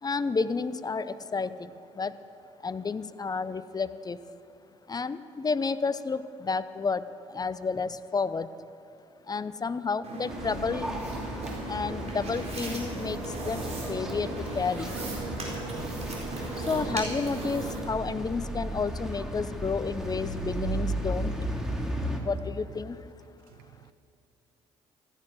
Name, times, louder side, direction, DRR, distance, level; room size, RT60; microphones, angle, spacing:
voice 1, 0.0-2.2 2.6-4.2 4.9-8.5 9.3-10.9 11.7-15.0 16.6-21.4 22.2-23.1, left 4 dB, 25° left, 14 dB, 0.6 m, -31 dB
sound 1, 10.0-17.8, right 2 dB, 45° right, 4.3 m, -37 dB
sound 2, 10.3-22.2, right 1 dB, 5° right, 2.2 m, -35 dB
voice 2, 23.5-23.9, right 13 dB, 70° right, 10 dB, 0.5 m, -54 dB
14.5 x 10.0 x 7.7 m, 2.6 s
hypercardioid pair, 50°, 15 cm